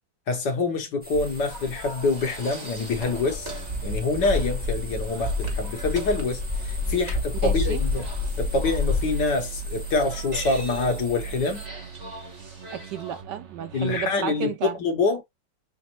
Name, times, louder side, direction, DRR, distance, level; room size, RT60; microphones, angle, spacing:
voice 1, 0.3-3.5 3.8-8.0 8.4-11.6 13.7-15.2, left 3 dB, 65° left, 1.7 m, -26 dB
sound 1, 1.0-11.7, left 3 dB, 10° right, 0.5 m, -30 dB
sound 2, 1.2-13.2, right 2 dB, 25° right, 1.0 m, -42 dB
sound 3, 2.8-14.1, right 7 dB, 50° right, 0.9 m, -41 dB
voice 2, 7.4-7.8 12.7-14.8, right 10 dB, 70° right, 1.1 m, -32 dB
6.4 x 2.1 x 2.8 m
omnidirectional pair, 2.1 m